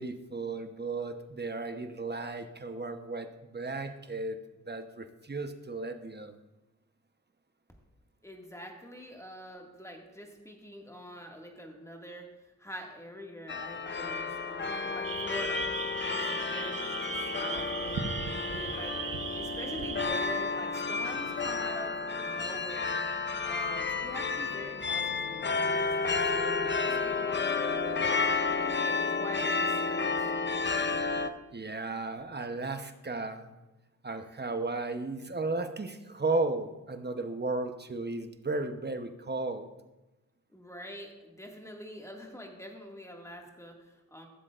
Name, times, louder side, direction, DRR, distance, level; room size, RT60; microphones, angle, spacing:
voice 1, 0.0-4.4 4.6-6.3 31.5-33.5 34.0-39.7, right 3 dB, 30° right, 7 dB, 0.9 m, -34 dB
voice 2, 8.2-12.3 12.6-15.7 16.0-18.0 18.5-19.0 19.3-23.0 23.4-28.2 28.5-30.2 40.5-44.3, equal, 10° left, 1 dB, 2.0 m, -45 dB
sound 1, 13.5-31.3, left 4 dB, 35° left, 0.7 m, -31 dB
sound 2, 15.0-20.0, right 6 dB, 90° right, 0.8 m, -37 dB
15.0 x 7.4 x 2.5 m, 1.0 s
cardioid pair, 40°, 32 cm